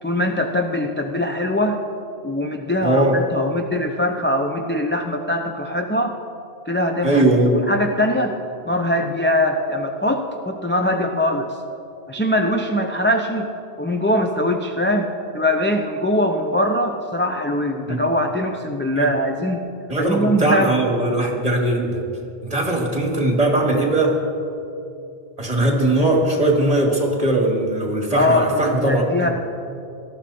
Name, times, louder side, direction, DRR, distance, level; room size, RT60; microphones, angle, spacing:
voice 1, 0.0-1.8 2.2-6.2 6.7-8.3 8.7-11.5 12.1-13.5 13.8-19.7 20.0-20.8 28.1-29.3, left 1 dB, 15° left, 2 dB, 0.5 m, -22 dB
voice 2, 2.8-3.2 7.0-7.6 17.9-18.0 19.0-19.1 19.9-22.0 22.4-24.2 25.4-29.3, right 1 dB, 35° right, 0 dB, 2.4 m, -19 dB
18.5 x 13.0 x 4.3 m, 2.6 s
omnidirectional pair, 1.1 m